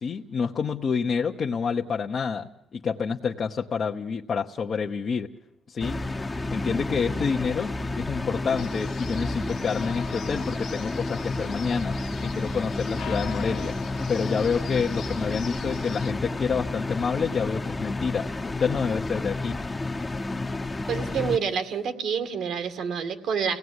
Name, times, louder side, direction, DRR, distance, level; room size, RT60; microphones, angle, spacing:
voice 1, 0.0-5.3 5.7-6.0 6.5-13.7 14.1-19.6, left 6 dB, 50° left, 1 dB, 1.0 m, -28 dB
sound 1, 5.8-21.4, left 2 dB, 20° left, 1.0 m, -31 dB
sound 2, 8.6-16.1, left 9 dB, 80° left, 1.3 m, -42 dB
voice 2, 20.9-23.6, right 6 dB, 75° right, 9 dB, 2.2 m, -28 dB
29.5 x 17.5 x 9.7 m, 0.93 s
cardioid pair, 90°, 0 cm